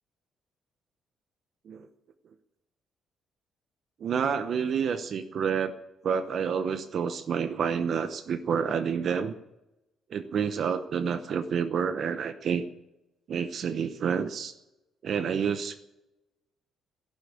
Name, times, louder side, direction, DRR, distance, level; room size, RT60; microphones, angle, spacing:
voice 1, 4.0-5.7 6.0-9.3 10.1-12.7 13.3-14.5 15.0-15.8, right 7 dB, 45° right, 11 dB, 0.8 m, -29 dB
13.5 x 12.0 x 8.6 m, 0.94 s
cardioid pair, 160°, 0 cm